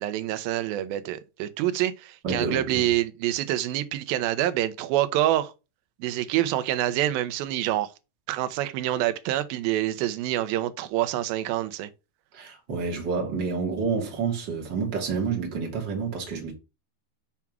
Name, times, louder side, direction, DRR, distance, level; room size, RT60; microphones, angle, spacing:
voice 1, 0.0-5.5 6.0-7.9 8.3-11.9, right 13 dB, 80° right, 2.2 m, -26 dB
voice 2, 2.2-2.9 12.3-16.5, right 5 dB, 35° right, 2.0 m, -29 dB
7.1 x 3.5 x 6.0 m
omnidirectional pair, 4.8 m